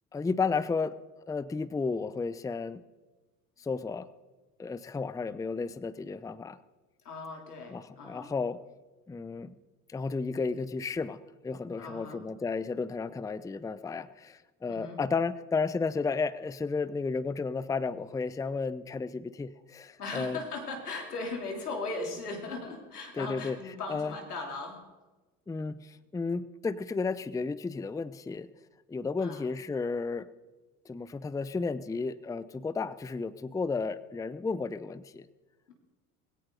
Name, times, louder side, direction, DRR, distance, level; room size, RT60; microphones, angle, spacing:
voice 1, 0.1-0.9 1.3-2.8 3.6-4.1 4.6-6.6 7.7-8.6 9.1-9.6 9.9-11.2 11.4-20.4 23.2-23.6 23.9-24.1 25.5-28.5 28.9-30.3 30.9-35.3, left 4 dB, 10° left, 16 dB, 0.6 m, -33 dB
voice 2, 7.0-8.3 11.8-12.2 14.7-15.0 20.0-24.9 29.2-29.5 35.7-35.8, left 3 dB, 85° left, 2 dB, 3.4 m, -38 dB
20.5 x 16.5 x 3.9 m, 1.2 s
hypercardioid pair, 65°, 45 cm